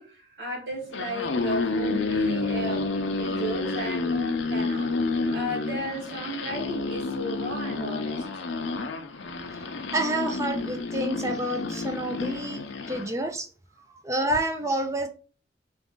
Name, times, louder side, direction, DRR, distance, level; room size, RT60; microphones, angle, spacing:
voice 1, 0.0-4.9 5.3-8.3 9.1-9.7 13.9-14.0, equal, 65° right, -3 dB, 1.2 m, -35 dB
sound 1, 0.8-13.1, left 3 dB, 80° left, 0.6 m, -29 dB
voice 2, 9.9-12.6 12.9-13.5 14.0-15.1, right 1 dB, 15° right, 5 dB, 0.4 m, -28 dB
3.9 x 2.6 x 3.6 m, 0.36 s
head